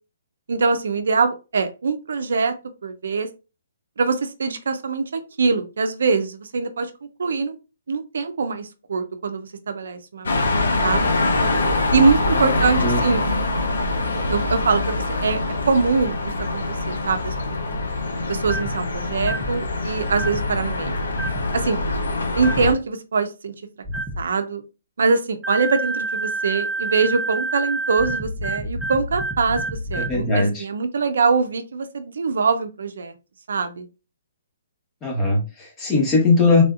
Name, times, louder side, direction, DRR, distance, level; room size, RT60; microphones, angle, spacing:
voice 1, 0.5-2.5 2.8-3.3 4.0-6.9 7.2-7.6 7.9-10.5 10.8-11.1 11.9-13.2 14.3-15.4 15.7-17.3 18.3-21.0 21.5-21.8 22.3-23.5 24.2-24.6 25.0-33.1 33.5-33.9, right 4 dB, 75° right, 8 dB, 0.5 m, -23 dB
sound 1, 10.2-22.7, left 2 dB, 85° left, 0.7 m, -24 dB
sound 2, 18.4-18.8 19.2-19.6 20.1-20.5 21.1-21.5 22.3-22.7 23.8-24.2 25.4-30.2, right 2 dB, 10° right, 0.4 m, -28 dB
voice 2, 29.9-30.7 35.0-36.6, left 3 dB, 20° left, 0 dB, 1.1 m, -19 dB
3.4 x 2.6 x 2.4 m, 0.30 s
hypercardioid pair, 155°, 0 cm